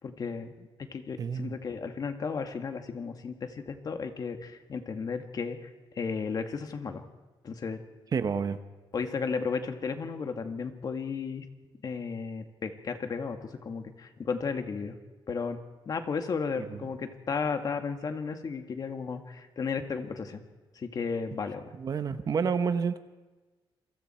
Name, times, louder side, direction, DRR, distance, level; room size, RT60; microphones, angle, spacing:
voice 1, 0.0-5.7 6.0-7.0 7.4-7.8 8.9-11.4 11.8-15.0 15.3-15.6 15.9-20.4 20.8-21.6, left 5 dB, 45° left, 6 dB, 1.9 m, -34 dB
voice 2, 1.2-1.5 8.1-8.6 16.7-16.8 21.8-23.0, right 6 dB, 45° right, 11 dB, 1.0 m, -29 dB
28.0 x 24.0 x 4.4 m, 1.2 s
wide cardioid pair, 145°, 9 cm